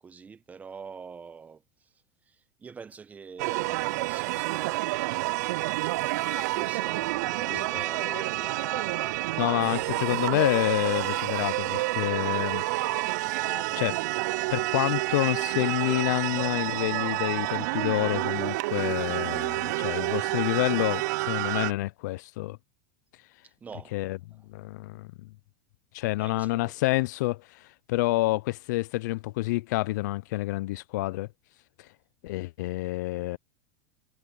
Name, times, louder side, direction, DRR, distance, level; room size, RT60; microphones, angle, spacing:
voice 1, 0.0-1.9 2.3-4.9 5.8-6.0 6.5-8.8 9.3-10.1 23.4-24.1 26.2-26.8, right 5 dB, 15° right, 1.1 m, -46 dB
sound 1, 3.4-21.7, right 21 dB, 70° right, 0.4 m, -29 dB
sound 2, 6.1-16.5, left 2 dB, 5° left, 1.2 m, -46 dB
voice 2, 9.4-12.6 13.7-14.0 14.5-22.6 23.9-24.2 24.5-25.1 25.9-27.6 27.9-31.3 32.2-33.4, left 19 dB, 75° left, 0.4 m, -28 dB
supercardioid pair, 140°, 10 cm